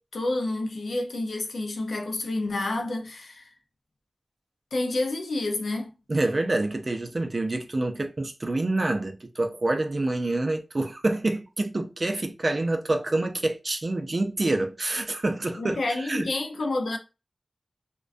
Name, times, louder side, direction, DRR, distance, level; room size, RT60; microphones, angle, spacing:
voice 1, 0.0-3.5 4.7-5.9 15.6-17.0, left 2 dB, 90° left, 0.5 m, -29 dB
voice 2, 6.1-16.3, right 2 dB, 45° right, 0.4 m, -27 dB
2.3 x 2.2 x 2.4 m
wide cardioid pair, 90°, 0 cm